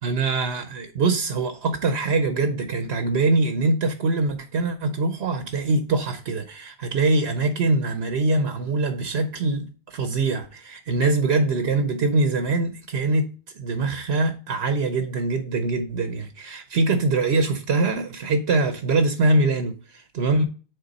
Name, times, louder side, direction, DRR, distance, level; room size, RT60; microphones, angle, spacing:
voice 1, 0.0-13.3 13.5-20.4, right 3 dB, 80° right, 1.1 m, -23 dB
6.8 x 4.2 x 4.0 m
omnidirectional pair, 1.1 m